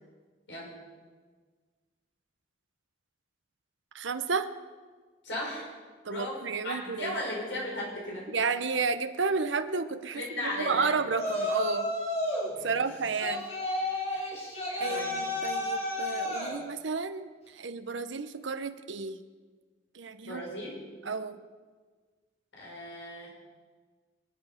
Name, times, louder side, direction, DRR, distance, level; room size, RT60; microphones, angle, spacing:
voice 1, 3.9-4.5 6.0-7.2 8.3-11.9 12.6-13.5 14.8-19.2 19.9-20.4 21.0-21.4, right 4 dB, 85° right, 10 dB, 0.8 m, -32 dB
voice 2, 5.2-5.7 6.1-8.3 10.1-10.9 12.5-12.8 14.1-14.3 14.9-15.2 20.2-20.8 22.5-23.3, left 1 dB, 75° left, -3 dB, 6.4 m, -36 dB
Yell, 11.1-12.5 13.2-16.6, left 1 dB, 35° left, 4.4 m, -31 dB
26.0 x 9.0 x 5.8 m, 1.5 s
head